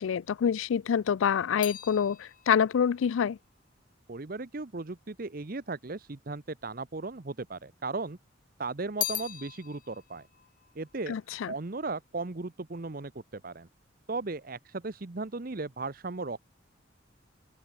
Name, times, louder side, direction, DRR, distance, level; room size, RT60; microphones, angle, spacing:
voice 1, 0.0-3.4 11.1-11.5, left 7 dB, 80° left, 0.3 m, -26 dB
sound 1, 0.6-5.1 5.8-6.7 6.9-8.1 8.4-11.9 12.2-12.7, left 13 dB, 45° left, 2.0 m, -41 dB
voice 2, 4.1-8.2 8.6-10.3 10.7-11.1 11.5-13.7 14.1-16.4, right 3 dB, 45° right, 0.8 m, -36 dB
open air
head